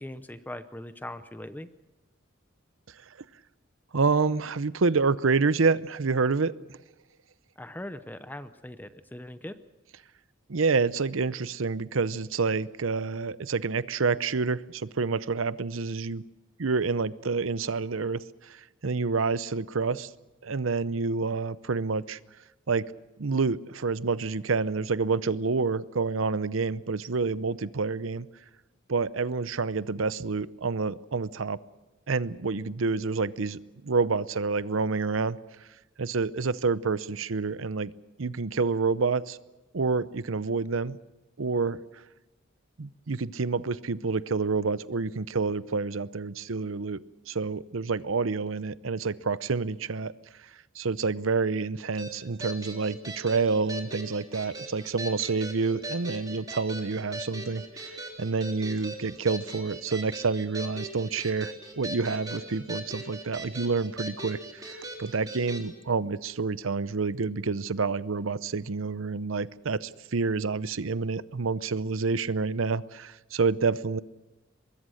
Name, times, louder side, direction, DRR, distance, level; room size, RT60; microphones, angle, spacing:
voice 1, 0.0-1.7 7.6-9.6, left 1 dB, 10° left, 11 dB, 0.7 m, -40 dB
voice 2, 3.9-6.5 10.5-16.2 16.6-20.1 20.4-22.2 22.7-22.9 23.2-28.3 28.9-31.6 32.1-35.4 36.0-37.9 38.2-39.4 39.7-41.0 41.4-41.8 42.8-50.1 50.7-74.0, right 4 dB, 85° right, 16 dB, 0.7 m, -28 dB
sound 1, 52.0-65.7, right 1 dB, 20° right, 3.5 m, -40 dB
24.0 x 21.5 x 6.5 m, 1.1 s
head